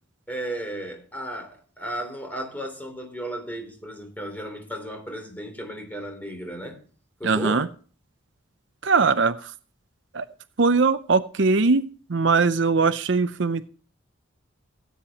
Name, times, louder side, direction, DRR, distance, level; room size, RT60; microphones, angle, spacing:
voice 1, 0.3-6.8 7.2-7.7, right 1 dB, 10° left, 3.3 m, -34 dB
voice 2, 7.2-7.7 8.8-9.5 10.1-10.3 10.6-13.7, right 4 dB, 65° right, 0.6 m, -21 dB
17.0 x 9.4 x 2.9 m
head